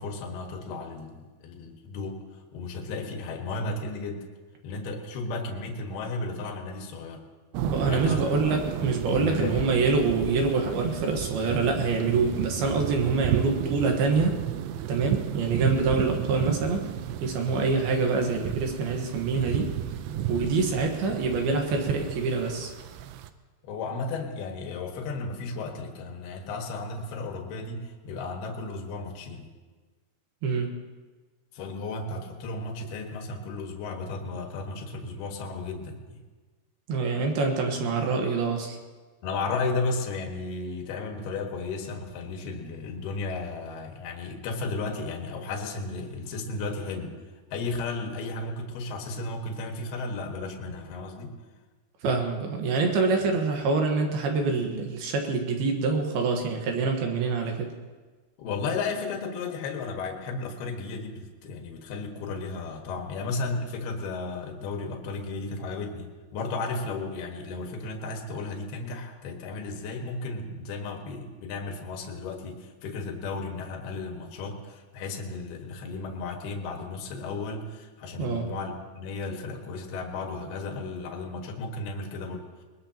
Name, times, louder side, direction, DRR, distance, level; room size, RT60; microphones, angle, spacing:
voice 1, 0.0-2.2 2.5-4.2 4.6-7.2 7.8-8.2 9.2-9.6 17.4-17.6 20.3-20.4 23.6-29.5 31.5-36.2 39.2-47.2 47.5-51.3 58.4-82.5, left 3 dB, 70° left, 2 dB, 3.4 m, -34 dB
sound 1, 7.5-23.3, right 10 dB, 85° right, 2.8 m, -32 dB
voice 2, 7.6-14.4 14.9-16.8 17.2-19.7 20.3-22.7 30.4-30.7 36.9-38.8 52.0-57.7 78.2-78.5, right 4 dB, 70° right, 2 dB, 3.0 m, -26 dB
22.0 x 20.5 x 2.9 m, 1.3 s
omnidirectional pair, 5.0 m